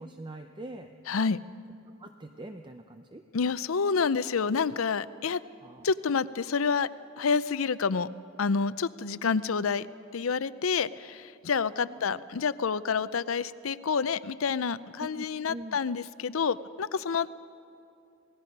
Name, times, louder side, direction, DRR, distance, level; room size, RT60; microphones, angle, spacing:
voice 1, 0.0-0.9 2.0-3.2 5.6-5.9 11.7-12.2 15.0-15.8, right 1 dB, 20° right, 6 dB, 0.6 m, -43 dB
voice 2, 1.1-1.4 3.3-5.4 5.8-6.9 7.2-8.1 8.4-9.9 10.1-17.3, left 5 dB, 80° left, 16 dB, 0.6 m, -28 dB
27.0 x 19.0 x 5.4 m, 2.6 s
head